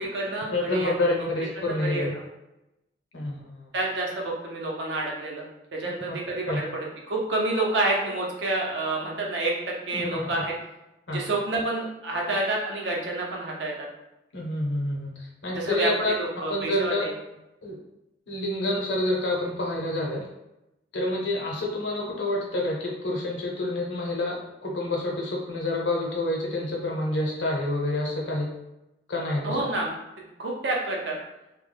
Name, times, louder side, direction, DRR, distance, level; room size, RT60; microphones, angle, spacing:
voice 1, 0.0-1.3 1.6-2.2 3.7-5.5 5.7-10.5 11.1-13.9 15.5-17.1 29.4-31.2, right 2 dB, 85° right, -2 dB, 0.7 m, -29 dB
voice 2, 0.5-2.1 3.1-3.7 6.1-6.2 6.5-6.6 9.9-10.2 11.1-11.2 14.3-15.1 15.4-16.1 16.5-17.0 17.6-17.8 18.3-20.3 20.9-28.5 29.1-29.6, left 1 dB, 90° left, -2 dB, 0.7 m, -28 dB
2.2 x 2.1 x 3.3 m, 0.92 s
head